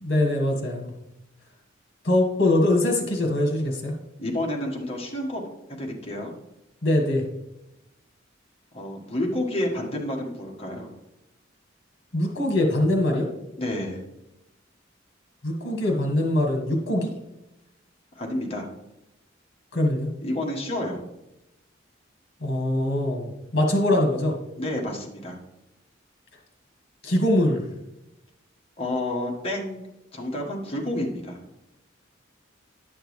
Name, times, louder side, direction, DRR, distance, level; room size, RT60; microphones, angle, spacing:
voice 1, 0.0-0.9 2.0-3.9 6.8-7.2 12.1-13.3 15.4-17.1 19.7-20.1 22.4-24.4 27.0-27.6, left 1 dB, 55° left, 1 dB, 1.7 m, -23 dB
voice 2, 4.2-5.4 5.8-6.3 8.7-10.9 13.6-14.0 18.2-18.7 20.2-21.0 24.6-25.4 28.8-29.8 30.1-31.4, left 1 dB, 30° left, -1 dB, 1.5 m, -29 dB
10.5 x 6.4 x 3.2 m, 0.91 s
head